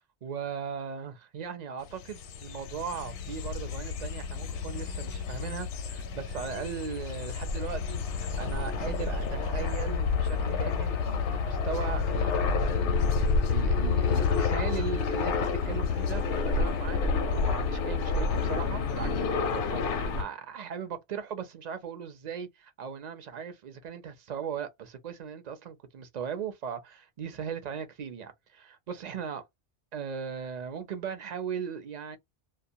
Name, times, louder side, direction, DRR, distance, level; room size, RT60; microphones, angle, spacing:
voice 1, 0.2-15.4 15.7-29.4 29.9-32.2, right 7 dB, 50° right, 0.6 m, -38 dB
sound 1, 1.9-20.2, left 5 dB, 85° left, 0.9 m, -29 dB
2.4 x 2.1 x 2.7 m
omnidirectional pair, 1.2 m